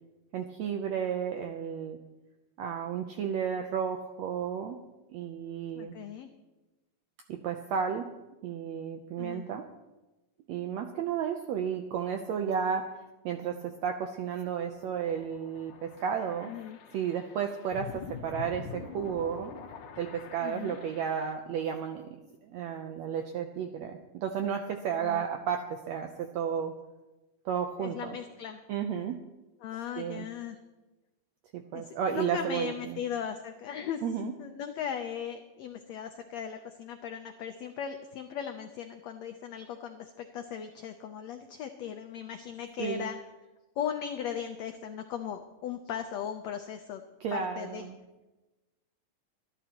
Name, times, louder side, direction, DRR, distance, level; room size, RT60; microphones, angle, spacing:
voice 1, 0.3-2.0 2.6-4.8 5.1-5.9 7.3-8.1 8.4-9.7 10.5-12.9 13.2-16.5 16.9-19.5 20.0-26.7 27.4-28.2 28.7-29.2 30.0-30.2 31.5-33.0 34.0-34.3 42.8-43.1 47.2-48.0, right 7 dB, 80° right, 5 dB, 1.5 m, -33 dB
voice 2, 5.7-6.3 9.2-9.5 16.4-16.8 20.4-20.8 25.0-25.3 27.8-28.6 29.6-30.6 31.7-34.0 34.4-43.2 43.8-47.0 47.3-47.9, left 8 dB, 90° left, 5 dB, 1.5 m, -38 dB
sound 1, 14.4-21.3, left 7 dB, 70° left, 2.5 m, -45 dB
25.5 x 11.0 x 2.9 m, 1.1 s
omnidirectional pair, 3.9 m